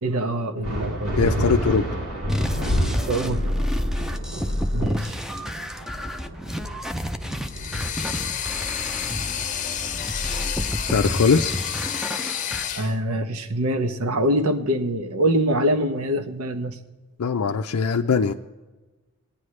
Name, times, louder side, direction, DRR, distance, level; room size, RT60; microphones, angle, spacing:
voice 1, 0.0-1.3 3.1-3.5 4.7-5.2 12.7-16.8, right 1 dB, 90° right, 8 dB, 0.9 m, -24 dB
sound 1, 0.6-10.6, equal, 70° right, 3.3 m, -30 dB
voice 2, 1.2-1.9 10.9-11.6 17.2-18.3, left 5 dB, 85° left, 4 dB, 0.5 m, -21 dB
sound 2, 2.3-12.7, equal, ahead, 0.5 m, -29 dB
sound 3, 7.4-12.9, left 9 dB, 35° left, 0.7 m, -30 dB
19.5 x 10.0 x 3.2 m, 1.2 s
head